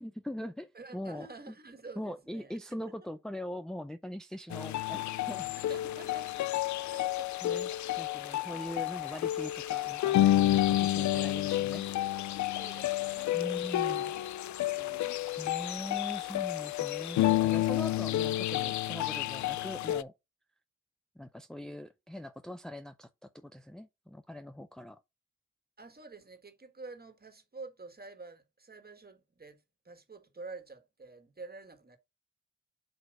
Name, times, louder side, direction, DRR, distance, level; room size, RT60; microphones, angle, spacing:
voice 1, 0.0-1.5 2.0-5.5 7.4-7.7 8.0-11.9 13.3-14.1 15.4-20.1 21.2-23.1 23.3-25.0, left 1 dB, ahead, 0.5 m, -42 dB
voice 2, 0.7-2.6 5.6-6.4 6.9-7.6 8.3-8.5 10.7-10.8 11.2-11.5 12.6-14.1 14.7-15.3 25.8-29.6 29.8-32.0, right 3 dB, 30° right, 1.8 m, -49 dB
sound 1, 4.5-20.0, left 14 dB, 75° left, 0.4 m, -30 dB
7.9 x 2.9 x 5.3 m
supercardioid pair, 45°, 29 cm